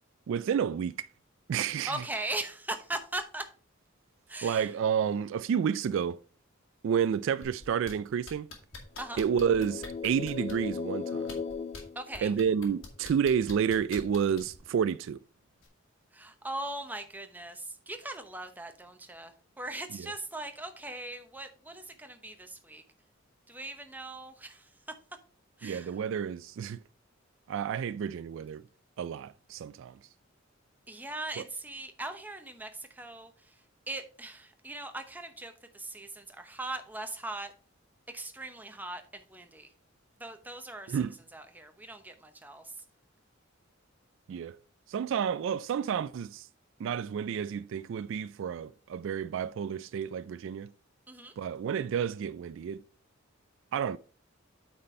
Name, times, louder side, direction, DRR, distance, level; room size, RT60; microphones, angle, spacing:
voice 1, 0.3-1.1 1.5-2.0 4.4-6.2 6.8-8.5 9.2-11.4 12.2-15.2 25.6-26.8 27.5-28.6 29.0-30.0 31.4-31.5 40.9-41.1 44.3-44.6 44.9-46.5 46.8-50.7 51.4-52.8 53.7-54.0, right 7 dB, 65° right, 0.3 m, -30 dB
voice 2, 1.9-3.5 4.3-4.7 9.0-9.2 11.9-12.3 16.1-22.8 23.5-24.7 25.6-25.9 30.9-37.5 38.1-39.7 40.2-41.0 41.3-42.8 51.1-51.3, right 2 dB, 10° right, 0.8 m, -40 dB
sound 1, 7.4-7.9 8.3-10.7 11.2-11.8 12.1-14.6 15.6-15.7, left 3 dB, 75° left, 2.0 m, -44 dB
sound 2, 9.0-12.8, left 5 dB, 30° left, 0.3 m, -38 dB
8.6 x 4.3 x 4.3 m
head